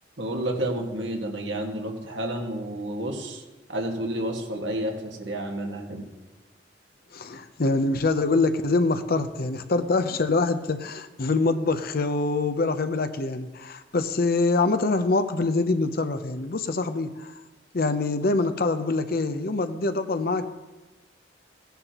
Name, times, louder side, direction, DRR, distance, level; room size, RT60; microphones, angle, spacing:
voice 1, 0.2-3.4 3.7-6.0, right 1 dB, 90° right, 1 dB, 1.8 m, -30 dB
voice 2, 7.1-17.3 17.7-20.5, left 3 dB, 55° left, 9 dB, 0.7 m, -25 dB
16.5 x 10.5 x 3.0 m, 1.2 s
head